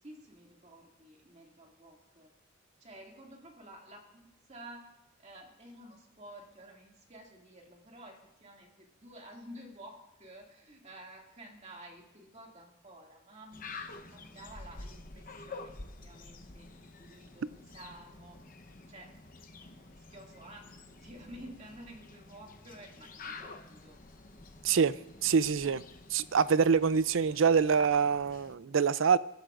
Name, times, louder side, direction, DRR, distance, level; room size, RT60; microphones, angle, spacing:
voice 1, 0.0-2.3 2.8-4.9 5.2-15.7 16.0-18.4 18.9-19.1 19.6-20.7 21.0-24.0, right 1 dB, 35° right, 2.4 m, -51 dB
sound 1, 13.5-28.5, left 3 dB, 40° left, 1.0 m, -49 dB
voice 2, 25.2-25.8 26.1-29.2, right 6 dB, 65° right, 0.5 m, -25 dB
28.5 x 13.0 x 2.6 m
head